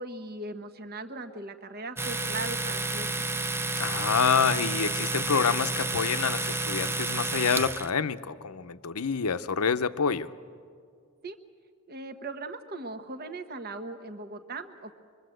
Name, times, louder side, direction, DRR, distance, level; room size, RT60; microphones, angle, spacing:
voice 1, 0.0-3.4 11.2-11.4 11.9-14.9, right 2 dB, 45° right, 7 dB, 1.1 m, -39 dB
Domestic sounds home sounds, 2.0-7.9, right 2 dB, 10° right, 0.5 m, -30 dB
voice 2, 3.8-10.3, left 6 dB, 80° left, 12 dB, 0.8 m, -27 dB
25.5 x 23.0 x 7.8 m, 2.1 s
head